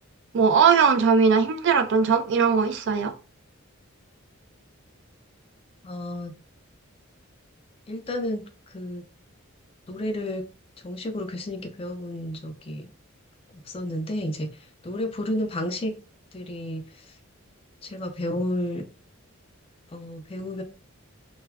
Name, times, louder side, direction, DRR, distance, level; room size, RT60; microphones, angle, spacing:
voice 1, 0.3-3.1, right 5 dB, 55° right, 0.3 m, -19 dB
voice 2, 5.8-6.3 7.9-9.0 9.9-10.4 10.8-12.9 13.5-16.0 16.3-17.2 17.8-18.9 19.9-20.6, left 1 dB, 25° left, 0.3 m, -32 dB
2.2 x 2.1 x 3.4 m
head